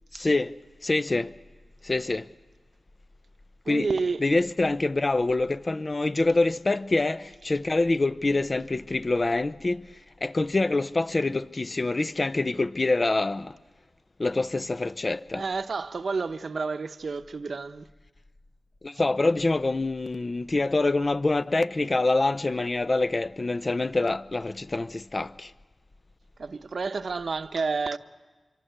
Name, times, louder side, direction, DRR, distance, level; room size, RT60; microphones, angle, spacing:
voice 1, 0.1-0.5 0.8-1.3 1.8-2.3 3.7-3.9 4.2-9.8 10.2-13.5 14.2-15.4 18.8-25.5, left 2 dB, 45° left, 0.7 m, -25 dB
voice 2, 3.6-4.2 15.3-17.9 26.4-28.0, right 4 dB, 70° right, 0.9 m, -30 dB
25.0 x 24.0 x 8.1 m
cardioid pair, 45°, 0 cm